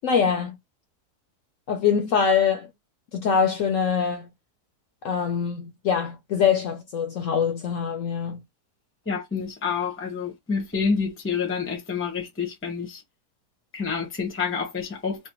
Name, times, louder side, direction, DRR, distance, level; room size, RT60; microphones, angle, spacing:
voice 1, 0.0-0.6 1.7-2.7 3.1-4.3 5.0-8.4, left 6 dB, 65° left, 0.8 m, -23 dB
voice 2, 9.1-13.0 13.7-15.3, left 5 dB, 15° left, 0.5 m, -28 dB
3.2 x 2.1 x 2.9 m
omnidirectional pair, 1.7 m